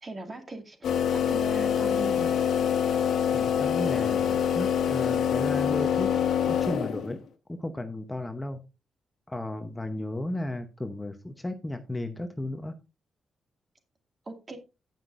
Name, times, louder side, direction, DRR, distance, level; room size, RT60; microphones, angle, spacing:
voice 1, 0.0-2.3 14.3-14.6, right 2 dB, 30° right, 5 dB, 2.2 m, -39 dB
sound 1, 0.8-7.2, left 8 dB, 80° left, 1.3 m, -25 dB
voice 2, 3.3-6.1 6.5-7.2 7.6-8.6 9.3-12.7, left 1 dB, 10° left, 6 dB, 0.8 m, -34 dB
17.5 x 5.9 x 2.5 m, 0.27 s
wide cardioid pair, 135°, 0 cm